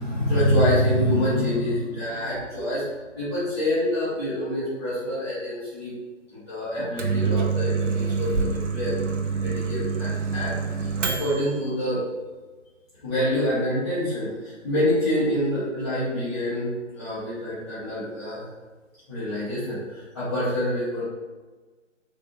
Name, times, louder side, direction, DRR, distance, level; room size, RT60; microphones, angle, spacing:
voice 1, 0.0-2.8 3.1-5.9 6.3-8.9 9.3-12.0 13.0-16.7 16.9-18.5 19.1-21.0, equal, 20° left, -14 dB, 1.0 m, -26 dB
Microwave oven, 6.7-11.6, right 5 dB, 70° right, 0.5 m, -26 dB
3.4 x 2.5 x 2.6 m, 1.3 s
figure-of-eight pair, 155°, 38 cm